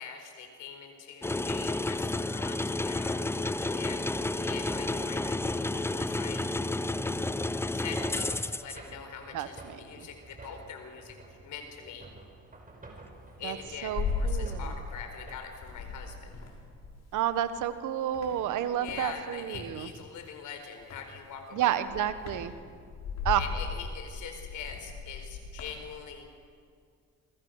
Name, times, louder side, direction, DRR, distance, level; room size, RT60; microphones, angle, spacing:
voice 1, 0.0-2.6 2.8-6.5 7.7-11.2 11.4-12.1 13.4-16.4 18.7-22.1 23.4-26.3, left 6 dB, 80° left, 5 dB, 4.5 m, -43 dB
sound 1, 1.2-8.8, left 2 dB, 10° left, 0.6 m, -31 dB
sound 2, 3.7-15.3, right 3 dB, 30° right, 5.6 m, -51 dB
voice 2, 9.3-10.1 13.4-13.6 13.8-14.6 17.1-19.9 21.5-22.5 23.2-23.4, right 11 dB, 90° right, 11 dB, 1.4 m, -30 dB
sound 3, 13.2-15.2 15.5-17.8 18.1-19.7 20.8-21.2 21.6-25.8, left 5 dB, 60° left, 5.8 m, -37 dB
28.0 x 22.5 x 6.6 m, 2.2 s
cardioid pair, 90°, 30 cm